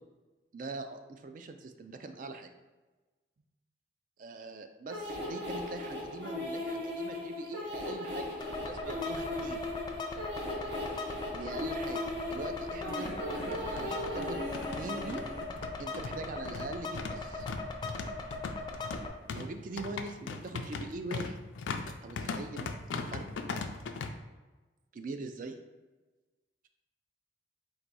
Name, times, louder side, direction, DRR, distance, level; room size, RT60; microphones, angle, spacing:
voice 1, 0.5-2.5 4.2-9.7 11.3-13.1 13.7-14.4 14.7-15.2 15.8-17.5 19.3-21.4 21.8-23.3 24.9-25.6, right 2 dB, 45° right, 7 dB, 0.4 m, -42 dB
sound 1, 4.9-15.4, left 1 dB, 70° right, 1.0 m, -38 dB
sound 2, 8.4-19.1, left 3 dB, 25° left, 0.4 m, -40 dB
sound 3, 12.0-12.1 12.4-12.5 13.3-24.1, left 4 dB, 85° left, 0.4 m, -39 dB
3.9 x 2.6 x 4.6 m, 1.2 s
head